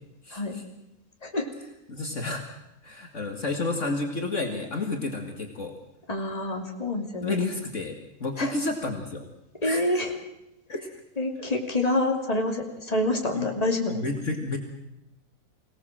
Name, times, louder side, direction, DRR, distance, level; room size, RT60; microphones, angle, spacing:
voice 1, 0.3-0.6 1.9-2.4 2.8-5.7 7.2-9.3 9.6-9.8 10.7-10.9 13.3-13.5 13.9-14.6, left 2 dB, 55° left, 3 dB, 2.5 m, -30 dB
voice 2, 6.1-7.3 8.4-8.5 9.6-10.1 11.2-13.9, left 1 dB, 25° left, 3 dB, 3.0 m, -27 dB
24.5 x 18.0 x 7.6 m, 0.88 s
omnidirectional pair, 1.6 m